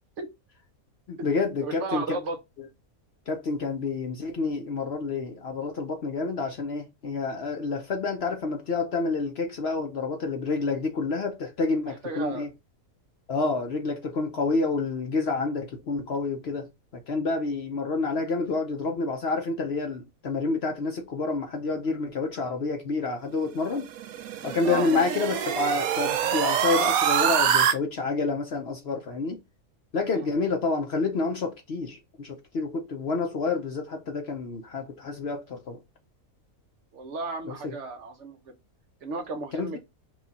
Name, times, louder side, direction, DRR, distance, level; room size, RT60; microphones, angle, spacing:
voice 1, 1.1-2.2 2.6-2.7 3.3-12.5 13.3-23.9 24.4-29.4 29.9-35.8 37.4-37.7 39.5-39.8, left 3 dB, 55° left, 0.8 m, -29 dB
voice 2, 1.6-2.4 12.0-12.5 13.3-13.4 24.6-25.1 30.2-30.3 36.9-38.5 39.0-39.8, right 3 dB, 60° right, 1.0 m, -34 dB
sound 1, 23.8-27.7, right 9 dB, 80° right, 1.0 m, -25 dB
4.7 x 2.4 x 4.0 m
omnidirectional pair, 1.5 m